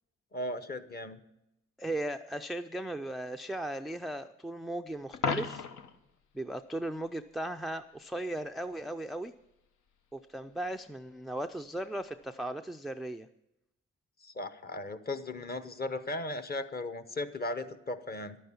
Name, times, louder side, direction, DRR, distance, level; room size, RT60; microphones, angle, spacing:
voice 1, 0.3-1.2 14.2-18.4, left 2 dB, 30° left, 11 dB, 1.0 m, -37 dB
voice 2, 1.8-5.7 6.3-9.3 10.1-13.3, right 1 dB, ahead, 9 dB, 0.4 m, -37 dB
Coin (dropping), 5.1-6.0 12.1-12.2, left 5 dB, 70° left, 1.1 m, -34 dB
11.5 x 9.3 x 7.1 m, 0.87 s
cardioid pair, 90°, 30 cm